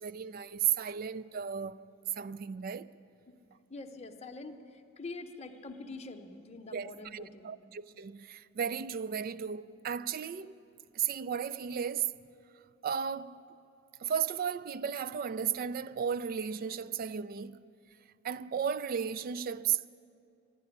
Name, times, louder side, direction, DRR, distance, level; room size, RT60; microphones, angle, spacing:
voice 1, 0.0-1.8 2.2-2.9 6.7-10.5 10.9-12.1 12.8-13.4 14.0-17.6 18.2-19.9, right 8 dB, 45° right, 0.3 m, -34 dB
voice 2, 3.7-7.6, left 3 dB, 35° left, 0.8 m, -45 dB
12.0 x 10.5 x 10.0 m
head